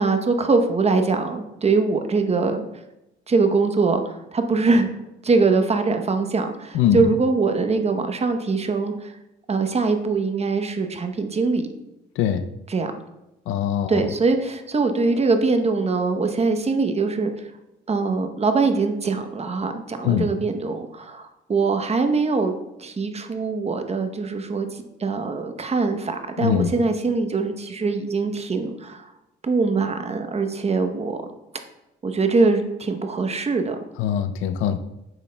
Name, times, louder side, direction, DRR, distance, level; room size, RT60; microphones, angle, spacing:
voice 1, 0.0-2.6 3.3-4.9 5.2-9.1 9.5-11.7 12.7-12.9 13.9-17.5 17.9-22.5 22.8-29.1 29.4-31.2 32.0-33.8, right 4 dB, 30° right, 6 dB, 0.8 m, -22 dB
voice 2, 6.7-7.1 12.2-12.5 13.5-14.0 20.0-20.3 26.4-26.7 34.0-34.8, left 9 dB, 90° left, 10 dB, 0.5 m, -22 dB
8.9 x 6.2 x 2.2 m, 0.92 s
cardioid pair, 90°, 20 cm